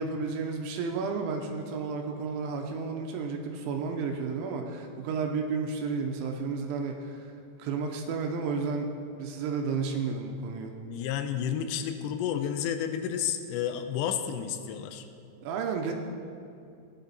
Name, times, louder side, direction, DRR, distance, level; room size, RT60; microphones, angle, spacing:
voice 1, 0.0-7.3 7.6-8.9 9.2-10.7 15.4-15.9, right 5 dB, 85° right, 2 dB, 3.2 m, -32 dB
voice 2, 10.9-15.1, left 8 dB, 85° left, 8 dB, 2.8 m, -31 dB
17.5 x 11.0 x 4.1 m, 2.5 s
omnidirectional pair, 5.2 m